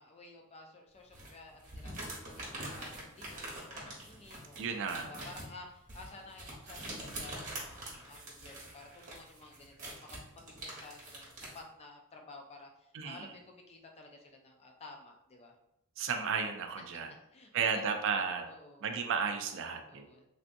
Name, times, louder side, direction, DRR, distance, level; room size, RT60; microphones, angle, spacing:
voice 1, 0.0-1.9 2.3-4.7 5.1-15.5 17.3-17.8 18.5-18.9 19.8-20.3, left 3 dB, 30° left, 1 dB, 0.4 m, -53 dB
sound 1, 1.1-11.6, right 1 dB, 35° right, 1.0 m, -45 dB
voice 2, 4.6-5.1 12.9-13.3 16.0-17.1 17.5-18.5 18.8-20.1, right 6 dB, 60° right, 7 dB, 0.4 m, -33 dB
3.3 x 2.6 x 2.5 m, 0.83 s
head